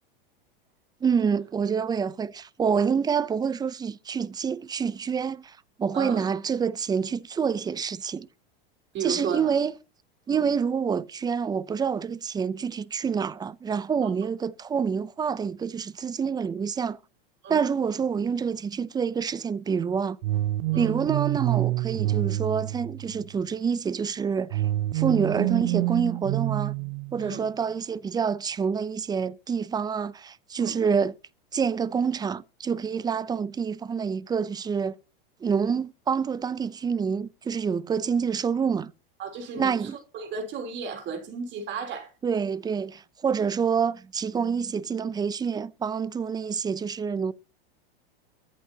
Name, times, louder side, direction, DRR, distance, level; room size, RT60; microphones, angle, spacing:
voice 1, 1.0-8.3 9.0-9.7 10.3-17.0 17.5-20.2 20.7-24.6 24.9-26.7 27.1-31.1 31.5-35.0 35.4-38.9 39.6-40.0 42.2-47.3, right 6 dB, 15° right, 0.5 m, -27 dB
voice 2, 5.9-6.2 8.9-9.5 10.3-10.5 14.0-14.1 17.4-17.6 20.7-20.9 27.2-27.4 30.6-30.8 39.2-42.1, right 5 dB, 40° right, 3.4 m, -34 dB
sound 1, 20.2-23.4 24.5-27.4, right 17 dB, 65° right, 0.5 m, -27 dB
23.5 x 8.3 x 2.8 m
hypercardioid pair, 120°, 30 cm